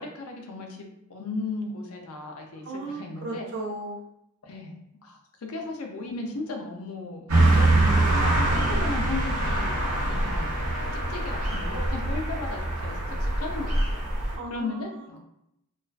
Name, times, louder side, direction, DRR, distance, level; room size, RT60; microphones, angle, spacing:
voice 1, 0.0-2.6 2.9-3.5 4.4-4.8 5.0-14.0 14.5-15.2, left 3 dB, 90° left, 2 dB, 0.5 m, -36 dB
voice 2, 2.6-4.0 14.3-15.2, right 2 dB, 50° right, 0 dB, 0.3 m, -36 dB
Wind instrument woodwind instrument, 7.3-13.3, left 4 dB, 50° left, 0.7 m, -43 dB
sound 1, 7.3-14.4, right 2 dB, 85° right, 0.7 m, -24 dB
2.3 x 2.3 x 2.2 m, 0.79 s
head